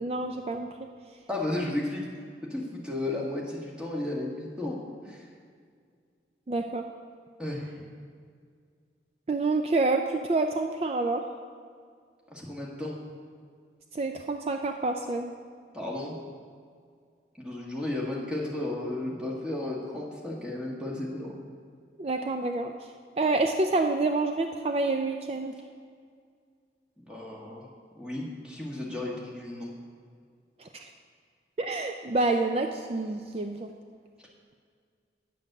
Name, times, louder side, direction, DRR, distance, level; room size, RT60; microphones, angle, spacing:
voice 1, 0.0-0.7 6.5-6.8 9.3-11.2 13.9-15.3 22.0-22.9 23.2-25.5 30.6-30.9 31.6-33.7, right 3 dB, 35° right, 5 dB, 0.4 m, -28 dB
voice 2, 1.3-2.1 2.4-4.8 5.0-5.3 7.4-7.9 12.3-13.0 15.7-16.2 17.4-21.4 27.0-27.7 27.9-29.7, left 1 dB, 5° right, -4 dB, 1.5 m, -34 dB
9.2 x 7.3 x 6.6 m, 2.1 s
head